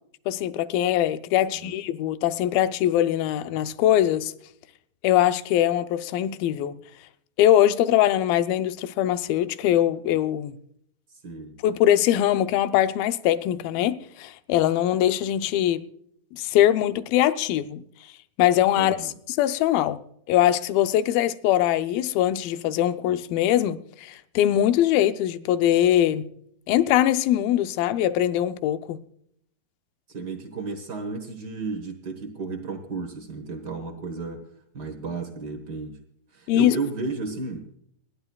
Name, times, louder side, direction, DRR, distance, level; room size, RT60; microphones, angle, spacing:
voice 1, 0.3-4.3 5.0-6.8 7.4-10.6 11.6-15.8 16.3-17.8 18.4-19.0 19.3-20.0 20.3-26.3 26.7-29.0 36.5-36.8, left 12 dB, 85° left, 2.5 m, -22 dB
voice 2, 1.4-1.8 11.1-11.6 18.7-19.1 30.1-34.4 34.7-36.0 36.3-37.7, right 4 dB, 75° right, 0.9 m, -33 dB
28.0 x 12.0 x 2.3 m
omnidirectional pair, 4.1 m